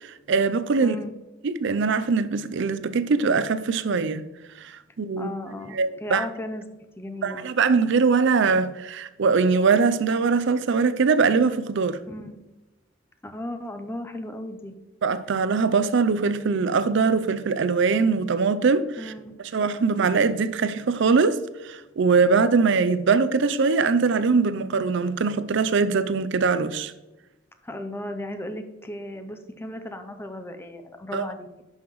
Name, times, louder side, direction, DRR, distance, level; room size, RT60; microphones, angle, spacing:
voice 1, 0.0-1.0 1.4-4.2 4.6-4.7 5.0-5.3 5.7-6.3 7.2-12.0 15.0-19.1 19.5-21.4 21.6-26.9 31.1-31.2, right 4 dB, 65° right, 0.5 m, -22 dB
voice 2, 0.8-1.1 5.2-6.6 7.0-7.4 12.1-12.4 13.2-14.7 19.0-19.3 27.6-31.5, left 1 dB, 10° left, 0.6 m, -35 dB
11.0 x 5.6 x 3.1 m
head